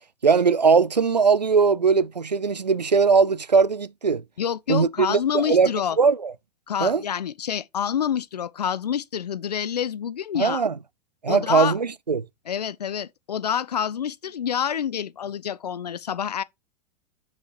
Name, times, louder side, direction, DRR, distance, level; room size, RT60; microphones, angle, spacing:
voice 1, 0.2-4.2 4.7-5.7 6.0-6.3 6.8-7.0 10.3-10.7 11.2-12.2, right 5 dB, 90° right, 0.5 m, -20 dB
voice 2, 4.4-6.0 6.7-10.6 11.3-11.7 12.5-16.4, left 8 dB, 75° left, 0.5 m, -27 dB
9.8 x 4.9 x 2.9 m
figure-of-eight pair, 90°, 21 cm